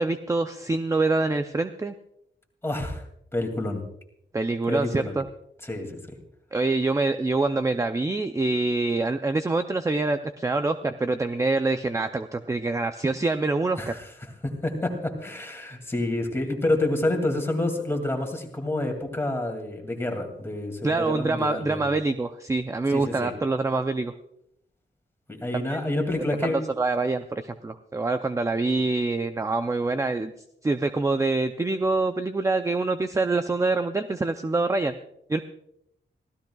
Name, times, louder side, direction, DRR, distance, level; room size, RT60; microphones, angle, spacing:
voice 1, 0.0-1.9 4.3-5.3 6.5-13.9 20.8-24.1 25.7-25.8 26.4-30.3 30.6-34.9 35.3-35.4, right 3 dB, 15° right, 8 dB, 0.5 m, -25 dB
voice 2, 2.6-3.0 3.3-3.8 4.7-5.2 5.6-6.0 13.8-21.9 22.9-23.3 25.3-26.6, left 2 dB, 10° left, 3 dB, 2.4 m, -28 dB
25.0 x 16.0 x 2.3 m, 0.77 s
wide cardioid pair, 160°, 19 cm